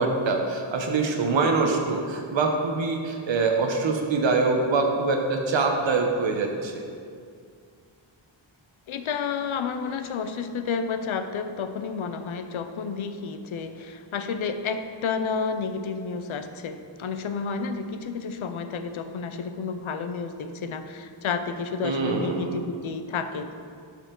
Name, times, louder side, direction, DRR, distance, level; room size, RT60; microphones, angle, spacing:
voice 1, 0.0-6.8 21.8-22.5, right 3 dB, 65° right, 2 dB, 0.9 m, -24 dB
voice 2, 8.9-23.5, left 5 dB, 80° left, 9 dB, 0.6 m, -31 dB
12.5 x 4.6 x 3.8 m, 2.2 s
wide cardioid pair, 115°, 48 cm